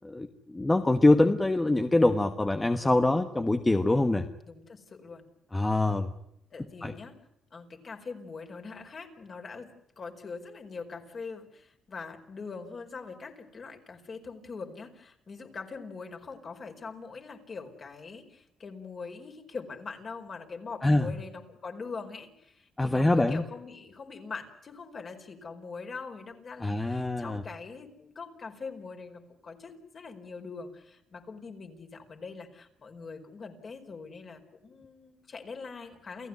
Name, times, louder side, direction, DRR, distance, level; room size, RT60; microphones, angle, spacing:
voice 1, 0.0-4.3 5.5-6.1 6.8-6.9 20.8-21.0 22.8-23.4 26.6-27.4, left 2 dB, 15° left, 7 dB, 1.4 m, -24 dB
voice 2, 4.4-5.2 5.7-5.9 6.5-7.1 7.5-9.7 10.0-36.3, left 4 dB, 45° left, 4 dB, 4.7 m, -42 dB
29.0 x 16.0 x 9.6 m, 0.78 s
cardioid pair, 90°, 0 cm